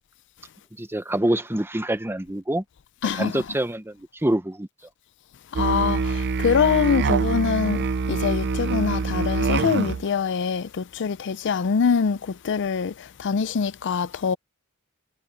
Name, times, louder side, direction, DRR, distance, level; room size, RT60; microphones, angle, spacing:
voice 1, 0.8-2.6 3.0-4.7, right 1 dB, 10° right, 0.8 m, -26 dB
voice 2, 3.0-3.4 5.5-14.4, left 6 dB, 55° left, 0.5 m, -24 dB
Musical instrument, 5.6-10.1, right 4 dB, 50° right, 0.5 m, -25 dB
head